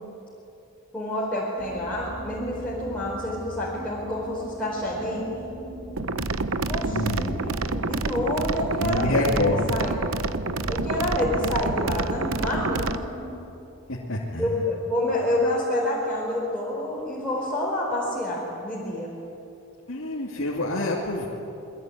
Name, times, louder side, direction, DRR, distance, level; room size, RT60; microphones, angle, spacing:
voice 1, 0.9-5.2 6.7-9.9 10.7-13.0 14.4-19.1, left 1 dB, 5° left, -7 dB, 4.6 m, -28 dB
sound 1, 1.6-13.5, equal, 15° right, 5.1 m, -40 dB
sound 2, 6.0-13.0, right 3 dB, 65° right, 0.9 m, -28 dB
voice 2, 6.9-7.7 8.8-9.8 13.9-14.5 19.9-21.3, left 2 dB, 65° left, -5 dB, 2.9 m, -27 dB
27.5 x 21.5 x 9.4 m, 2.9 s
head